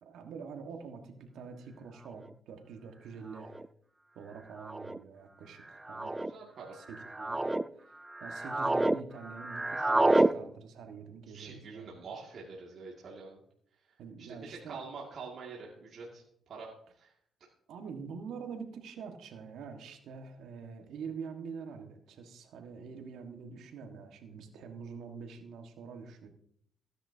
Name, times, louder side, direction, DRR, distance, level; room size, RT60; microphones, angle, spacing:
voice 1, 0.0-3.6 4.1-6.2 6.7-7.4 7.7-12.0 14.0-14.8 17.7-26.3, right 5 dB, 80° right, 5 dB, 1.6 m, -45 dB
sound 1, 2.3-2.4 3.4-3.7 4.6-5.0 5.8-6.3 6.9-7.6 8.1-9.0 9.2-10.3, right 2 dB, 15° right, 0.4 m, -28 dB
voice 2, 5.9-6.8 11.3-13.4 14.2-16.7 17.0-17.1, right 4 dB, 60° right, -3 dB, 2.2 m, -46 dB
15.5 x 10.0 x 2.8 m, 0.68 s
cardioid pair, 90°, 0 cm